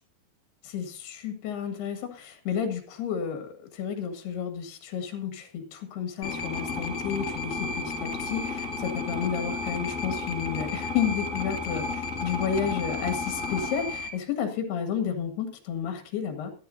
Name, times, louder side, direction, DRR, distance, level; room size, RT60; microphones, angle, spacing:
voice 1, 0.6-16.5, left 7 dB, 80° left, 7 dB, 3.8 m, -31 dB
sound 1, 6.2-14.1, left 3 dB, 25° left, 2.0 m, -32 dB
18.5 x 12.0 x 2.7 m, 0.42 s
omnidirectional pair, 4.6 m